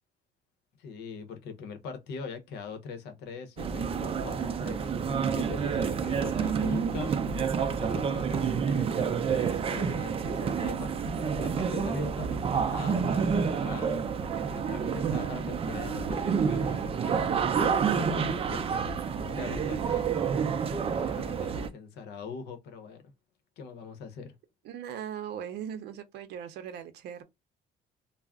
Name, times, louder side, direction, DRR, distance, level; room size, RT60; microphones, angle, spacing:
voice 1, 0.8-7.1 7.8-14.0 14.5-19.0 19.3-23.1 23.6-24.3, left 5 dB, 80° left, 0.8 m, -42 dB
sound 1, 3.6-21.7, right 6 dB, 35° right, 0.4 m, -29 dB
voice 2, 24.6-27.2, right 9 dB, 80° right, 0.6 m, -39 dB
2.4 x 2.0 x 3.5 m
cardioid pair, 110°, 17 cm